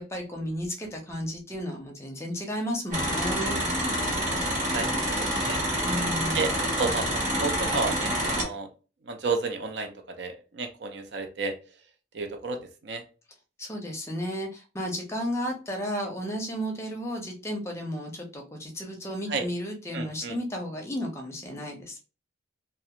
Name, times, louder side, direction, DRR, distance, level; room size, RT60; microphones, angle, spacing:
voice 1, 0.0-3.6 5.8-6.5 13.6-22.0, equal, 15° left, 2 dB, 0.5 m, -33 dB
sound 1, 2.9-8.4, equal, 40° right, 1.3 m, -27 dB
voice 2, 4.6-5.6 6.3-6.5 6.8-8.7 9.1-11.5 12.1-13.0 19.3-19.4 19.9-20.4, right 4 dB, 60° right, 6 dB, 0.5 m, -32 dB
2.4 x 2.4 x 2.8 m, 0.33 s
head